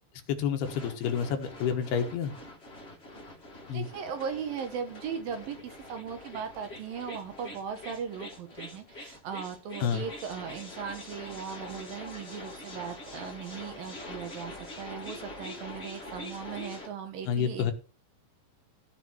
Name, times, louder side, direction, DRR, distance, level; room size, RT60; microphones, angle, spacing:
voice 1, 0.3-2.3 3.7-3.8 9.8-10.0 17.3-17.7, left 7 dB, 75° left, 6 dB, 3.2 m, -29 dB
sound 1, 0.6-16.9, left 1 dB, 20° left, 1.7 m, -44 dB
voice 2, 3.7-17.7, right 7 dB, 65° right, 7 dB, 2.7 m, -38 dB
14.5 x 5.0 x 6.3 m, 0.36 s
omnidirectional pair, 4.8 m